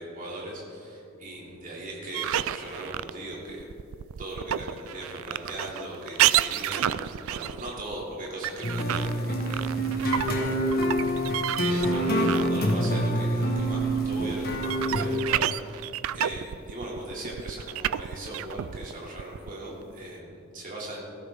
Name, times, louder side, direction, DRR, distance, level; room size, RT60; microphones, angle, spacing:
voice 1, 0.0-3.7 4.2-21.0, right 1 dB, 40° right, -4 dB, 3.0 m, -39 dB
sound 1, 2.1-12.9 13.1-19.9, right 11 dB, 65° right, 0.3 m, -30 dB
sound 2, 8.6-15.2, equal, 45° left, 1.6 m, -26 dB
17.5 x 13.5 x 3.8 m, 2.7 s
head